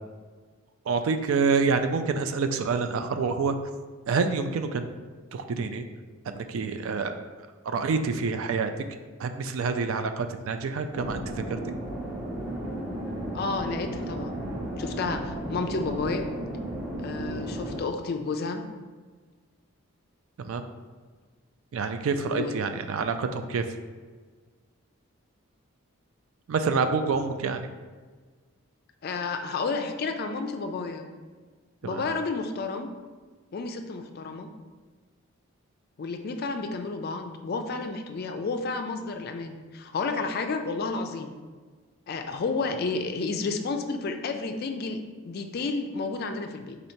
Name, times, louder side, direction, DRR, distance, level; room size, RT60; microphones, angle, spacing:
voice 1, 0.9-3.6 4.1-4.9 5.3-5.9 6.3-7.3 7.7-8.7 9.2-11.7 20.5-20.6 21.7-23.6 26.5-27.6 31.8-32.0, right 4 dB, 70° right, 8 dB, 0.3 m, -27 dB
sound 1, 10.9-17.8, right 1 dB, 10° right, 0.7 m, -34 dB
voice 2, 13.3-14.4 14.8-16.3 17.0-18.6 22.1-22.5 29.0-31.0 31.8-32.9 33.5-34.5 36.0-41.3 42.1-46.8, left 4 dB, 45° left, 6 dB, 0.3 m, -31 dB
4.0 x 2.7 x 4.4 m, 1.4 s
head